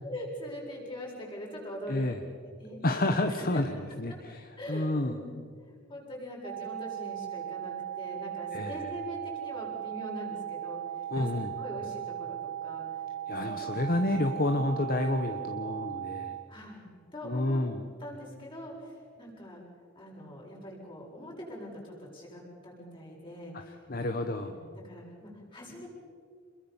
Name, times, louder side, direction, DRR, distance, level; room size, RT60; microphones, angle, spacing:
voice 1, 0.0-3.2 3.5-3.6 4.1-4.2 4.6-5.3 5.9-10.8 11.1-11.3 11.6-12.8 13.5-13.7 16.5-17.6 18.0-19.6 20.0-23.8 24.4-25.9, equal, 25° left, -3 dB, 7.6 m, -43 dB
voice 2, 1.9-2.2 2.8-4.4 4.7-5.1 8.5-8.8 11.1-11.5 13.3-16.3 17.2-17.8 23.9-24.6, left 1 dB, 50° left, 6 dB, 1.3 m, -29 dB
sound 1, 6.4-16.4, right 11 dB, 60° right, 1.3 m, -38 dB
27.5 x 22.0 x 7.4 m, 2.1 s
head